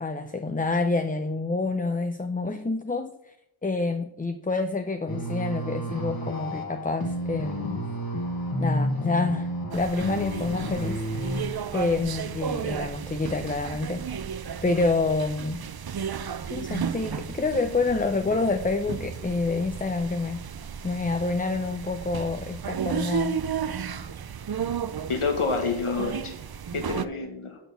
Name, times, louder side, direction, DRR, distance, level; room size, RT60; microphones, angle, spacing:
voice 1, 0.0-3.3 3.6-7.8 8.6-11.0 11.7-14.0 14.6-15.6 16.5-20.4 20.8-23.4, left 3 dB, 15° left, 8 dB, 0.5 m, -27 dB
sound 1, 5.1-11.4, equal, 45° left, 1.5 m, -31 dB
sound 2, 9.7-27.1, right 7 dB, 50° right, 0.5 m, -34 dB
voice 2, 25.1-26.3 26.7-27.6, left 4 dB, 80° left, 4 dB, 1.5 m, -28 dB
6.3 x 6.0 x 6.9 m, 0.80 s
wide cardioid pair, 55°, 50 cm